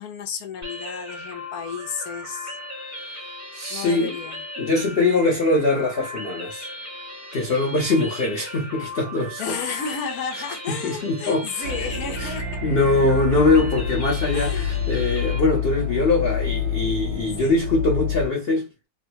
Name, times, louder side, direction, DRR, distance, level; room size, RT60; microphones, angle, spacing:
voice 1, 0.0-2.6 3.7-4.4 9.4-12.5 14.3-14.8 17.4-17.6, left 6 dB, 65° left, 1.1 m, -32 dB
sound 1, 0.6-15.4, left 1 dB, 15° right, 0.7 m, -37 dB
voice 2, 3.5-4.2 4.6-6.7 7.3-9.6 10.7-11.7 12.2-12.4 12.6-18.7, left 2 dB, 85° left, 0.5 m, -22 dB
sound 2, 11.6-18.3, left 6 dB, 80° right, 1.5 m, -27 dB
3.6 x 2.2 x 2.8 m
omnidirectional pair, 2.0 m